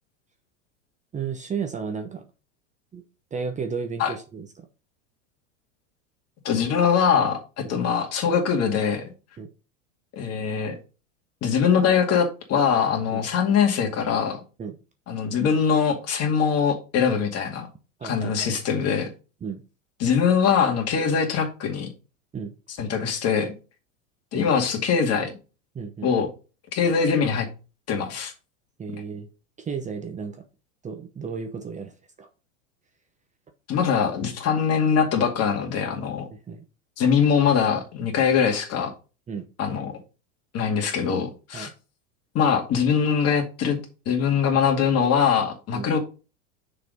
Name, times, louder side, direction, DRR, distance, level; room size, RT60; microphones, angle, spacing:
voice 1, 1.1-2.2 2.9-3.0 3.3-4.7 7.6-7.7 9.4-9.5 13.1-13.2 14.6-14.8 18.0-18.8 19.4-19.6 22.3-22.5 24.3-24.5 25.7-26.1 28.8-29.3 29.6-30.5 30.8-32.3 36.1-36.6 39.3-39.5 41.5-41.7 45.7-45.9, right 5 dB, 20° right, 6 dB, 0.8 m, -33 dB
voice 2, 6.4-9.1 10.1-10.8 11.4-14.4 15.1-17.7 18.0-19.1 20.0-21.9 22.8-23.5 24.3-25.4 26.0-26.3 26.7-27.5 27.9-28.3 33.7-36.3 37.0-38.9 39.6-40.0 40.5-41.7 42.3-43.8 44.1-46.0, left 6 dB, 40° left, 2 dB, 2.2 m, -22 dB
6.6 x 4.0 x 5.2 m, 0.33 s
hypercardioid pair, 115°, 39 cm